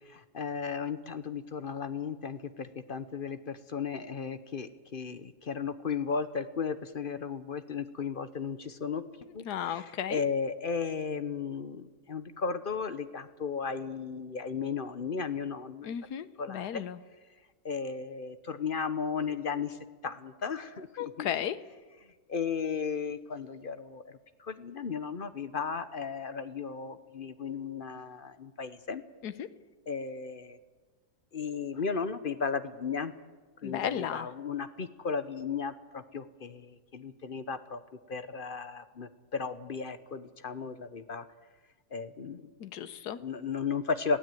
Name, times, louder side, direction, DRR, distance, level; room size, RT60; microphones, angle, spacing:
voice 1, 0.1-9.0 9.3-9.8 10.1-15.9 16.4-16.8 17.6-21.4 22.3-29.0 29.9-30.6 31.3-33.1 33.6-37.8 38.1-41.3 41.9-42.5 43.2-44.2, left 5 dB, 40° left, 12 dB, 0.9 m, -35 dB
voice 2, 9.4-10.2 15.8-17.0 21.0-21.6 29.2-29.5 33.6-34.3 42.6-43.2, left 9 dB, 80° left, 13 dB, 1.5 m, -35 dB
21.5 x 16.0 x 9.1 m, 1.3 s
omnidirectional pair, 1.7 m